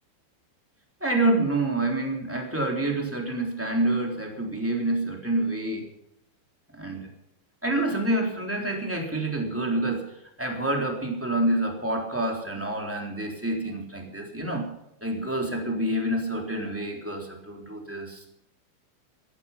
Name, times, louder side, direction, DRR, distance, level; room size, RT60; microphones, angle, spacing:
voice 1, 1.0-5.9 6.7-7.0 7.6-10.1 10.4-14.7 15.0-18.3, right 1 dB, 5° right, 1 dB, 2.6 m, -27 dB
17.5 x 13.5 x 5.9 m, 0.81 s
omnidirectional pair, 5.6 m